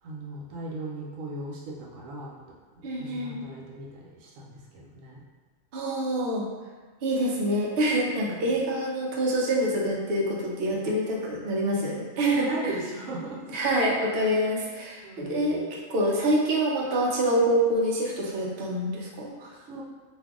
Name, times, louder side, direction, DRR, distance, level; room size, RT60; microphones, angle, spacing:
voice 1, 0.0-2.4 2.7-5.2 8.2-8.5 12.3-13.7 15.0-15.7 19.5-19.8, right 2 dB, 80° right, -3 dB, 1.0 m, -38 dB
voice 2, 2.8-3.4 5.7-6.4 7.0-12.5 13.5-19.5, right 1 dB, 60° right, -2 dB, 0.7 m, -26 dB
2.6 x 2.4 x 3.5 m, 1.3 s
omnidirectional pair, 1.3 m